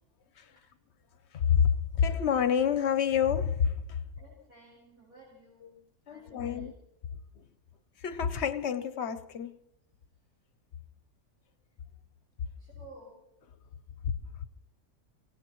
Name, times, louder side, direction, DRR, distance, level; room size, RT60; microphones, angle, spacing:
voice 1, 1.3-4.0 5.6-5.7 6.1-6.7 7.4-7.5 8.0-9.6 14.4-14.5, left 8 dB, 55° left, 0.9 m, -28 dB
voice 2, 4.2-5.8 6.1-6.7 12.6-13.1, right 2 dB, 65° right, 5.6 m, -54 dB
24.5 x 17.0 x 3.0 m
omnidirectional pair, 1.6 m